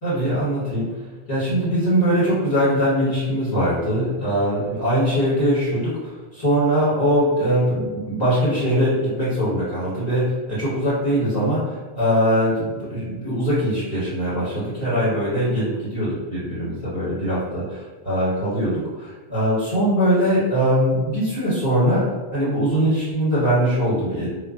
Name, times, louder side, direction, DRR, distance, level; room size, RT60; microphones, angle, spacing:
voice 1, 0.0-0.9 1.3-22.0 22.3-24.3, equal, 40° left, -13 dB, 1.5 m, -21 dB
2.5 x 2.3 x 2.4 m, 1.3 s
omnidirectional pair, 1.1 m